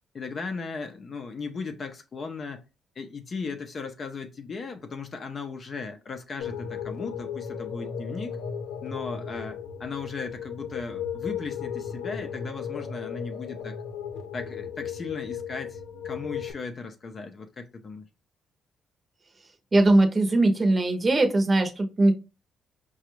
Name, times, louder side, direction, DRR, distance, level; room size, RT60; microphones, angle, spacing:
voice 1, 0.1-2.6 3.0-8.3 8.8-13.7 14.3-18.0, left 4 dB, 45° left, 0.6 m, -37 dB
sound 1, 6.4-16.5, left 7 dB, 90° left, 0.9 m, -35 dB
voice 2, 19.7-22.1, right 2 dB, 30° right, 0.7 m, -20 dB
4.9 x 2.3 x 3.0 m
cardioid pair, 90°, 0 cm